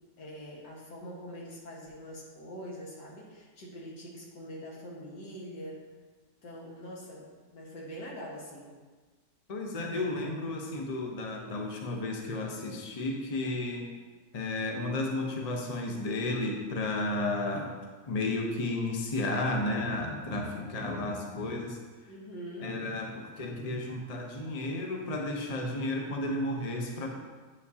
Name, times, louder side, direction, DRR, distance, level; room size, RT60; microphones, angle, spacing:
voice 1, 0.2-5.8 6.4-7.3 7.5-8.7 22.1-22.8, equal, 75° left, -4 dB, 2.2 m, -43 dB
voice 2, 9.5-13.9 14.3-17.7 18.1-21.8 22.6-27.1, left 2 dB, 35° left, 1 dB, 0.6 m, -33 dB
8.8 x 7.1 x 2.8 m, 1.4 s
omnidirectional pair, 1.9 m